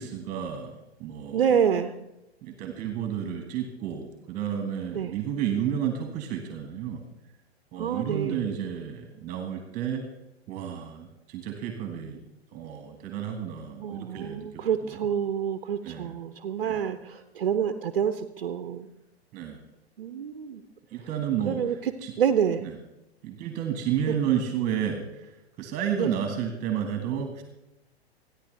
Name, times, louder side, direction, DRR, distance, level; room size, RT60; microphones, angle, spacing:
voice 1, 0.0-1.5 2.4-7.0 7.7-10.0 10.5-12.2 12.5-15.1 15.8-16.2 16.7-16.8 19.3-19.6 20.9-22.1 22.6-22.8 23.2-27.4, right 9 dB, 25° right, 6 dB, 1.7 m, -31 dB
voice 2, 1.3-1.9 4.9-5.1 7.8-8.4 13.8-18.9 20.0-20.6 21.5-21.7 22.2-22.6 26.0-26.1, right 8 dB, 55° right, 9 dB, 0.9 m, -27 dB
27.5 x 10.0 x 3.4 m, 0.91 s
figure-of-eight pair, 110°, 32 cm